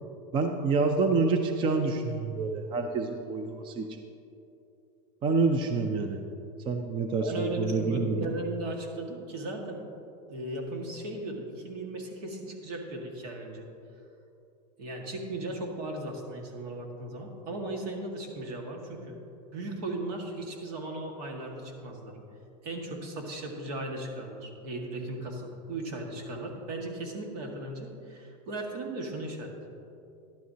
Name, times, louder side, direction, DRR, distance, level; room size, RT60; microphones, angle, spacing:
voice 1, 0.3-4.0 5.2-6.2 6.7-8.3, right 4 dB, 25° right, 5 dB, 0.5 m, -27 dB
voice 2, 7.2-9.8 10.3-13.7 14.8-19.2 19.5-22.2 22.6-29.6, right 2 dB, 70° right, 2 dB, 1.8 m, -36 dB
12.0 x 11.5 x 2.8 m, 2.7 s
supercardioid pair, 145°, 21 cm